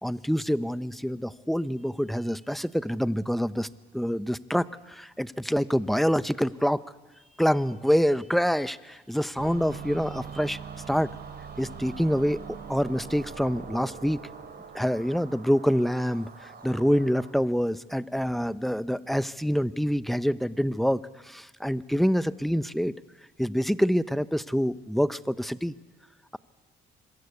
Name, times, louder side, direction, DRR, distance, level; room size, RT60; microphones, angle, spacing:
voice 1, 0.0-3.7 3.9-6.8 7.4-10.6 10.9-11.1 11.6-12.4 12.7-14.2 14.7-22.9 23.4-25.7, equal, ahead, 15 dB, 0.7 m, -26 dB
sound 1, 9.4-17.3, right 7 dB, 50° right, 3.5 m, -42 dB
25.5 x 22.0 x 8.3 m, 1.3 s
cardioid pair, 90°, 20 cm